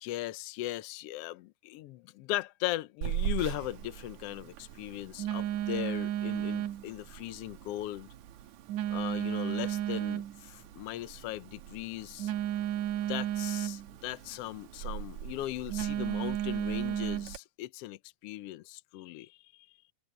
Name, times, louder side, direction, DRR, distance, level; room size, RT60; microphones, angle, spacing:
voice 1, 0.0-8.1 8.9-12.3 13.1-19.7, left 16 dB, 80° left, 1.4 m, -38 dB
Telephone, 3.0-17.4, right 11 dB, 75° right, 2.2 m, -35 dB
omnidirectional pair, 3.5 m